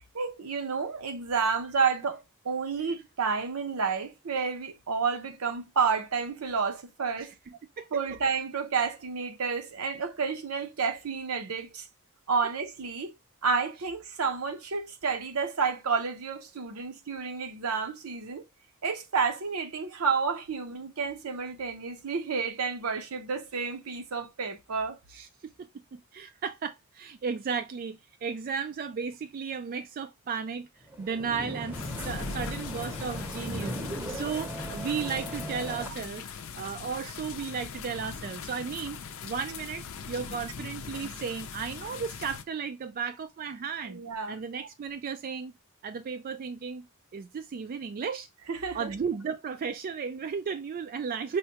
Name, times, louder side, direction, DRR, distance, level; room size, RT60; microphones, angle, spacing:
voice 1, 0.1-7.3 7.9-11.9 12.3-13.1 13.4-18.4 18.8-25.0 43.9-44.4 48.5-48.9, right 5 dB, 75° right, 0.7 m, -30 dB
voice 2, 7.5-8.0 25.1-25.3 25.9-30.7 31.0-33.8 34.1-36.3 36.5-39.0 39.2-44.0 44.3-45.5 45.8-46.9 47.1-48.3 48.7-51.4, right 6 dB, 40° right, 0.3 m, -34 dB
sound 1, 30.9-35.9, equal, 10° right, 0.7 m, -38 dB
sound 2, 31.7-42.4, left 5 dB, 65° left, 0.5 m, -40 dB
5.5 x 2.2 x 2.7 m
head